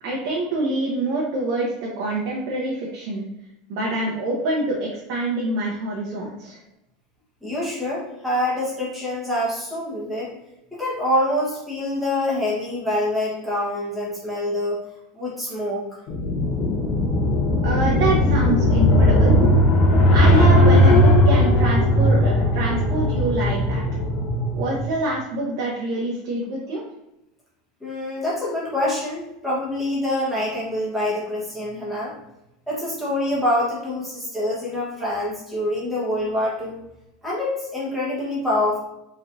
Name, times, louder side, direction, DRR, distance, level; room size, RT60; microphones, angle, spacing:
voice 1, 0.0-3.3 3.7-6.6 17.6-19.4 20.1-23.8 24.5-26.8, right 2 dB, 55° right, -3 dB, 0.9 m, -26 dB
voice 2, 7.4-10.3 10.7-14.8 15.1-15.8 27.8-32.1 32.7-36.8 37.2-38.8, left 1 dB, ahead, -8 dB, 1.2 m, -25 dB
sound 1, 16.1-24.9, left 1 dB, 40° left, 0.8 m, -17 dB
4.1 x 3.1 x 2.6 m, 0.88 s
supercardioid pair, 175°, 0 cm